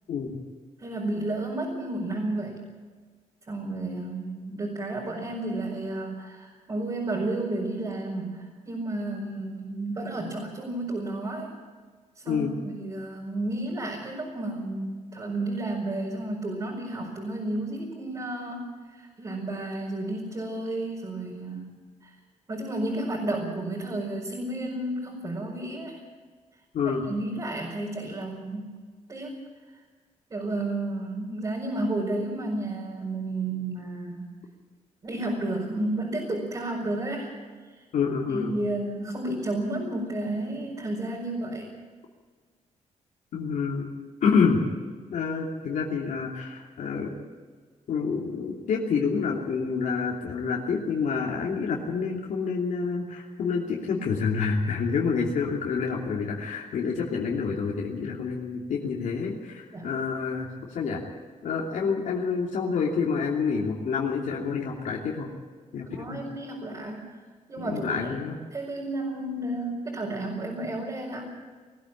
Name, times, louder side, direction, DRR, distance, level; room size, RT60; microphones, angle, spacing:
voice 1, 0.8-2.6 3.5-11.5 12.2-21.7 22.0-22.1 22.5-26.0 27.0-28.7 29.1-29.3 30.3-34.4 35.0-37.3 37.8-37.9 38.3-41.7 59.7-59.9 65.9-67.1 67.5-68.2 68.5-71.2, right 2 dB, 30° right, -4 dB, 5.0 m, -32 dB
voice 2, 37.9-38.5 43.3-43.9 44.2-44.6 45.1-47.1 47.9-61.0 61.4-65.3 65.7-65.9 66.1-66.2 67.6-68.4, left 5 dB, 85° left, -2 dB, 2.9 m, -28 dB
20.5 x 15.0 x 8.9 m, 1.5 s
wide cardioid pair, 155°, 13 cm